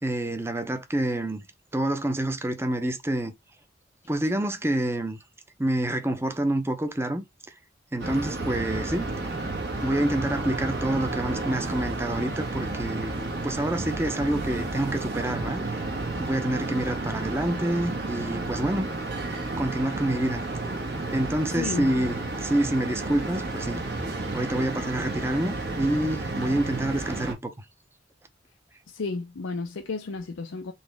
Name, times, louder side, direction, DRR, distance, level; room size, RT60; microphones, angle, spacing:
voice 1, 0.0-1.4 1.7-3.3 4.1-5.2 5.6-7.2 7.9-9.1 9.8-13.2 13.4-15.6 16.2-18.9 19.6-20.4 21.1-24.0 24.3-27.5, right 1 dB, 15° right, 0.6 m, -27 dB
sound 1, 8.0-27.3, right 2 dB, 60° right, 1.3 m, -32 dB
voice 2, 21.5-21.9 28.9-30.7, left 3 dB, 90° left, 0.5 m, -33 dB
4.0 x 2.9 x 3.4 m
head